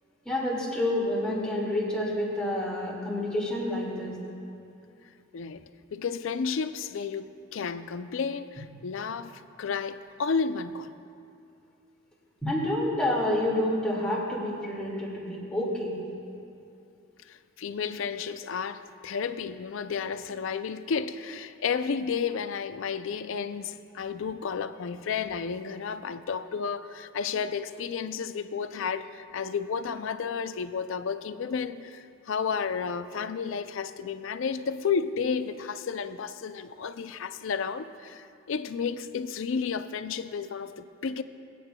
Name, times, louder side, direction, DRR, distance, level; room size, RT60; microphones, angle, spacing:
voice 1, 0.3-4.2 12.4-16.0, left 1 dB, 5° left, 2.0 m, -28 dB
voice 2, 5.9-10.9 17.3-41.2, left 6 dB, 70° left, 0.4 m, -32 dB
22.5 x 9.1 x 2.2 m
head